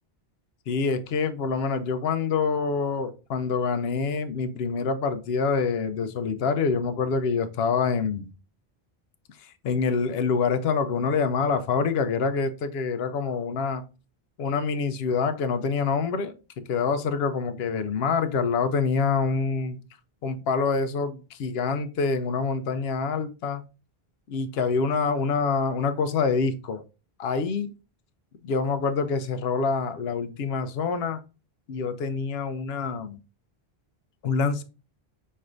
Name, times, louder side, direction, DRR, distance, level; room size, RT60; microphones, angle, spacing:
voice 1, 0.7-8.3 9.4-13.8 14.4-19.8 20.2-23.6 24.3-26.8 27.2-27.7 28.4-31.2 31.7-33.2 34.2-34.6, left 5 dB, 80° left, 10 dB, 0.8 m, -26 dB
5.4 x 3.2 x 2.5 m, 0.32 s
omnidirectional pair, 1.0 m